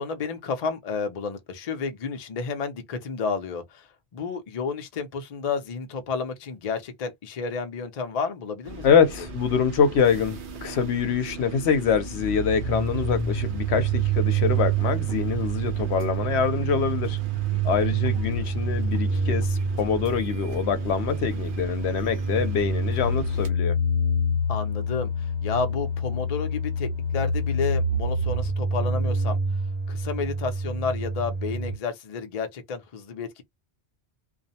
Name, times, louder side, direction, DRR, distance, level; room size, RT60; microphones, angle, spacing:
voice 1, 0.0-3.9 4.1-9.3 17.5-18.0 24.5-29.4 29.9-33.4, left 5 dB, 50° left, 0.5 m, -31 dB
sound 1, 8.6-23.5, right 3 dB, 55° right, 0.7 m, -38 dB
voice 2, 8.8-17.2 17.6-23.8, left 7 dB, 80° left, 0.8 m, -25 dB
sound 2, 12.6-31.7, right 2 dB, 80° right, 1.0 m, -27 dB
2.4 x 2.0 x 2.7 m
omnidirectional pair, 1.1 m